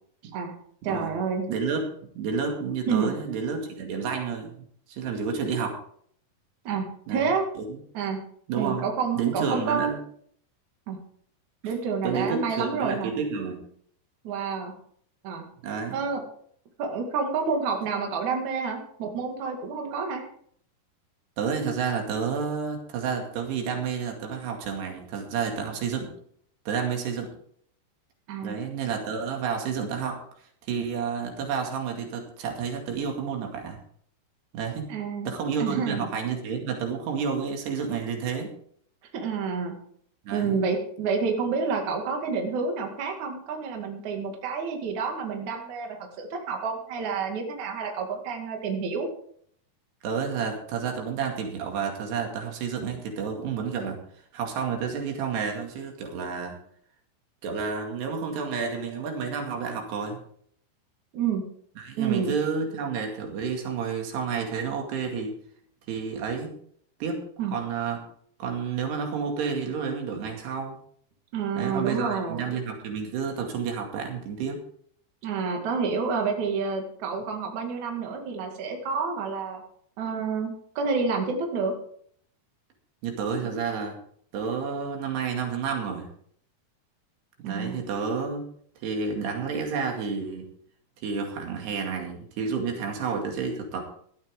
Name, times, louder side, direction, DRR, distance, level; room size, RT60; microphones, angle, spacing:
voice 1, 0.2-0.5 0.8-1.4 2.9-3.1 6.6-7.4 7.9-8.2 8.6-9.9 10.9-11.0 11.6-13.2 14.2-14.8 15.2-15.5 15.9-16.2 16.8-20.3 28.3-28.6 34.9-35.3 35.6-36.1 39.1-39.8 40.3-49.1 61.1-61.4 62.0-62.3 67.4-67.5 71.3-72.5 75.2-79.6 80.0-81.7 87.4-87.8, right 5 dB, 50° right, 2 dB, 3.2 m, -29 dB
voice 2, 1.5-4.6 4.9-5.8 7.1-7.3 7.6-7.8 8.5-8.9 9.2-10.0 11.6-11.8 12.0-13.6 15.6-16.0 21.4-26.1 26.7-27.3 28.4-30.2 30.7-33.8 34.5-34.9 35.3-38.5 40.3-40.5 50.0-54.0 54.3-56.6 57.4-60.2 61.8-65.4 65.9-66.5 67.0-67.2 67.5-68.0 68.4-70.8 71.6-74.6 83.0-84.0 84.3-86.1 87.4-88.5 88.8-90.5 91.0-93.8, right 6 dB, 90° right, 2 dB, 4.4 m, -30 dB
16.5 x 12.5 x 3.7 m, 0.62 s
omnidirectional pair, 4.6 m